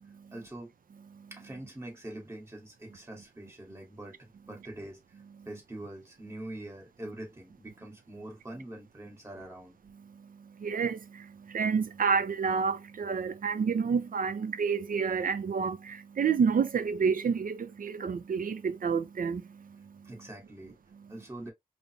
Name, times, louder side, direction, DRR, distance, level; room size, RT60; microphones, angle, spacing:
voice 1, 0.3-0.7 1.3-5.0 5.4-9.7 20.0-20.8 21.1-21.5, right 1 dB, 20° right, 1.7 m, -44 dB
voice 2, 10.1-20.1 20.9-21.1, right 6 dB, 70° right, 0.5 m, -30 dB
5.1 x 2.0 x 2.7 m
wide cardioid pair, 80°, 15 cm